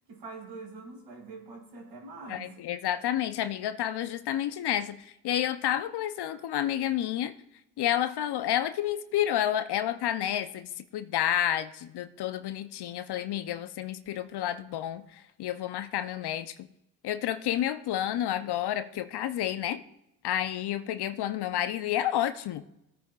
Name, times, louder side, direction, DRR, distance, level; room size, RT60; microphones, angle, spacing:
voice 1, 0.1-2.5, right 3 dB, 60° right, 4.3 m, -44 dB
voice 2, 2.3-7.3 7.8-16.5 17.0-19.8 20.2-22.6, left 11 dB, 55° left, 0.8 m, -30 dB
20.0 x 9.2 x 2.5 m
hypercardioid pair, 60°, 48 cm